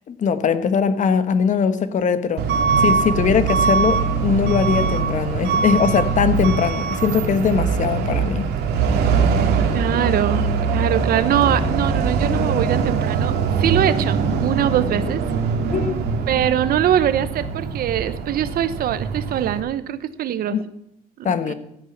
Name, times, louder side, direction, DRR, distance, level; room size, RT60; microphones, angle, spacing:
voice 1, 0.1-2.4 2.8-8.5 15.7-16.0 20.5-20.6 21.2-21.5, left 6 dB, 45° left, 1.3 m, -20 dB
Truck / Alarm, 2.4-19.6, right 5 dB, 80° right, 2.1 m, -22 dB
voice 2, 9.7-13.3 13.6-15.2 16.3-20.6 21.2-21.5, right 10 dB, 60° right, 1.0 m, -22 dB
14.5 x 8.4 x 6.0 m
cardioid pair, 110°, 17 cm